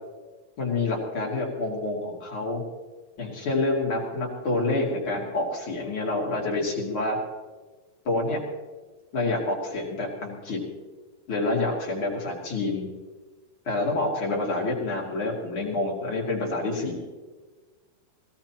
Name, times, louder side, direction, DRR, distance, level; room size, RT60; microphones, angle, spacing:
voice 1, 0.6-2.6 3.2-7.2 8.0-8.4 9.1-10.6 11.3-12.9 13.6-17.0, left 2 dB, 35° left, -3 dB, 3.0 m, -27 dB
22.0 x 16.5 x 3.0 m, 1.3 s
omnidirectional pair, 4.3 m